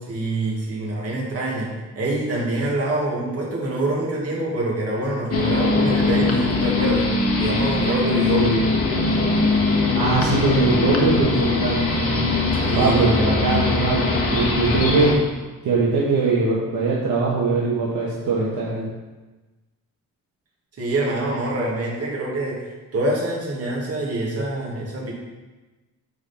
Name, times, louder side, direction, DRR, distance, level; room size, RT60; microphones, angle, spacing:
voice 1, 0.1-7.1 7.4-8.5 12.5-13.0 13.4-13.7 20.8-25.1, right 1 dB, 45° right, -4 dB, 2.2 m, -25 dB
sound 1, 5.3-15.1, left 3 dB, 45° left, 1.4 m, -21 dB
voice 2, 9.9-12.2 12.7-15.1 15.6-18.9, right 3 dB, 60° right, -5 dB, 1.4 m, -21 dB
9.5 x 3.9 x 4.4 m, 1.2 s
cardioid pair, 115°, 34 cm